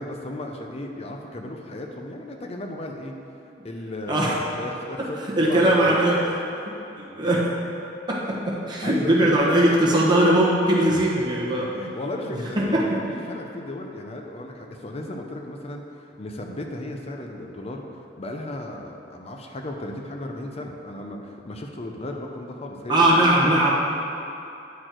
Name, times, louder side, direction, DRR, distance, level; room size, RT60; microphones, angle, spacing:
voice 1, 0.0-3.1 3.6-6.1 8.8-9.4 10.9-11.1 11.7-17.8 18.2-23.7, left 1 dB, 35° left, 2 dB, 0.7 m, -35 dB
voice 2, 5.3-6.2 6.6-7.4 8.1-11.7 12.6-12.9 22.9-23.7, right 1 dB, 25° right, -5 dB, 1.3 m, -20 dB
9.3 x 4.4 x 4.5 m, 2.8 s
head